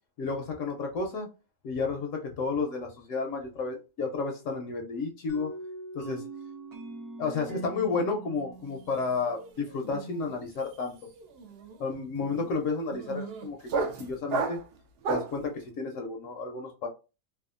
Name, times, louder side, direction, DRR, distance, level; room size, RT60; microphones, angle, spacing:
voice 1, 0.2-1.3 1.6-5.5 5.9-6.2 7.2-10.9 11.8-13.6 14.0-14.6 15.1-16.9, left 4 dB, 70° left, 3 dB, 0.9 m, -31 dB
sound 1, 5.3-10.0, right 3 dB, 55° right, 1.0 m, -42 dB
sound 2, 8.6-9.0 9.2-15.4, right 4 dB, 75° right, 0.5 m, -35 dB
2.7 x 2.3 x 2.4 m, 0.30 s
omnidirectional pair, 1.5 m